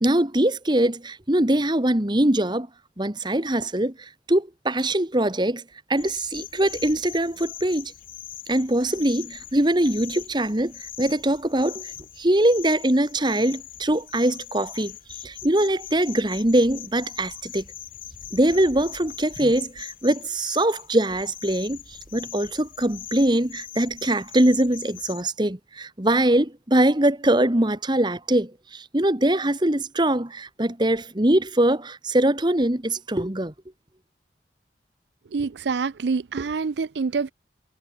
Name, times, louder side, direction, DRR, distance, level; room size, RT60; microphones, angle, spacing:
voice 1, 0.0-2.7 3.0-3.9 4.3-5.6 5.9-7.9 8.5-11.9 12.2-14.9 15.2-17.6 18.3-21.8 22.1-33.5, right 1 dB, 25° right, 1.6 m, -22 dB
sound 1, 6.0-25.2, left 12 dB, 50° left, 5.0 m, -41 dB
voice 2, 35.3-37.3, right 4 dB, 75° right, 0.5 m, -26 dB
head